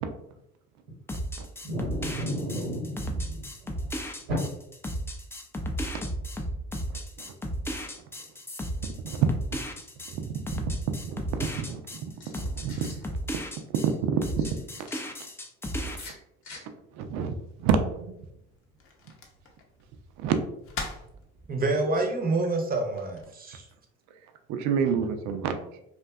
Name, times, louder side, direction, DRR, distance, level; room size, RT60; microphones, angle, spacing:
sound 1, 1.1-13.9 14.2-16.1, equal, 10° left, 0.3 m, -34 dB
voice 1, 1.6-3.8 4.3-4.4, equal, 85° right, -3 dB, 0.9 m, -32 dB
voice 2, 9.0-9.6 10.1-10.6 10.9-11.8 12.6-13.0 13.7-14.4 15.8-16.0 16.9-18.1 20.2-20.3 24.5-25.6, right 6 dB, 70° right, 6 dB, 0.4 m, -28 dB
sound 2, 12.1-13.0 14.4-15.0 15.9-16.6, left 3 dB, 80° left, 0.8 m, -47 dB
sound 3, 17.2-23.3, left 4 dB, 50° left, 0.6 m, -45 dB
voice 3, 21.5-23.7, right 2 dB, 30° right, 3 dB, 0.6 m, -27 dB
2.5 x 2.2 x 2.3 m, 0.80 s
hypercardioid pair, 60°, 29 cm